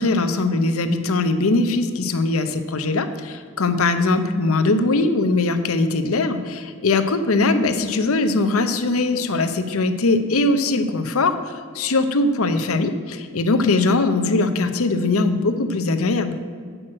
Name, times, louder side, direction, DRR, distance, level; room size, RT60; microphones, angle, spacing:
voice 1, 0.0-11.4 11.7-16.4, left 3 dB, 70° left, 9 dB, 0.8 m, -21 dB
7.8 x 6.1 x 7.6 m, 2.1 s
head